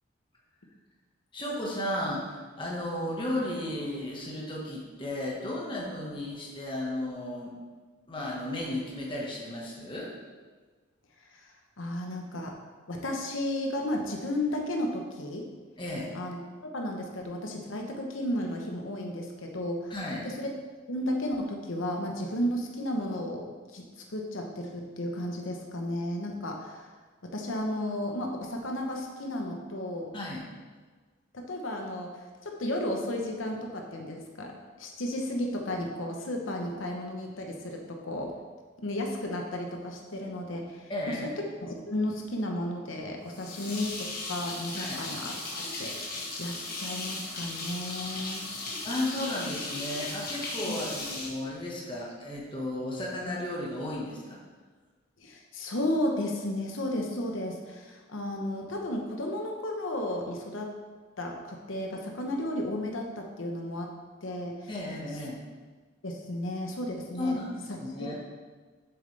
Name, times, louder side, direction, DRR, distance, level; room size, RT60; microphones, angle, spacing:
voice 1, 1.3-7.5 8.1-10.1 15.8-16.1 19.9-20.3 30.1-30.4 40.9-41.3 44.7-45.0 48.8-54.4 64.7-65.4 67.2-67.5 67.8-68.1, left 1 dB, 25° left, -3 dB, 1.4 m, -34 dB
voice 2, 11.2-12.6 12.9-15.5 16.1-16.4 16.7-19.9 20.2-20.5 20.9-23.5 23.7-23.9 24.1-26.9 27.2-30.1 31.3-38.4 38.8-48.5 50.7-50.8 55.2-60.7 61.2-64.7 66.0-67.4 68.0-68.1, left 1 dB, 85° left, 2 dB, 1.0 m, -33 dB
sound 1, 43.3-52.1, left 2 dB, 50° left, 1.5 m, -37 dB
7.9 x 6.9 x 3.4 m, 1.4 s
head